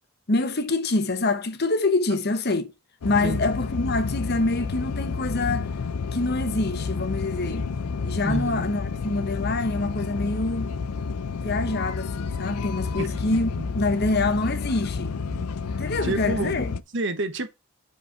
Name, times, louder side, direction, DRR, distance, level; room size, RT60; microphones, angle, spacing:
voice 1, 0.3-2.7 3.0-5.7 6.1-7.7 8.0-10.7 11.4-15.2 15.8-16.7, left 2 dB, 45° left, 1.0 m, -26 dB
sound 1, 3.0-16.8, left 5 dB, 85° left, 0.5 m, -30 dB
voice 2, 8.2-8.7 13.0-13.1 15.3-15.4 16.0-16.5 16.9-17.5, right 2 dB, 55° right, 1.0 m, -28 dB
5.3 x 4.9 x 5.9 m
head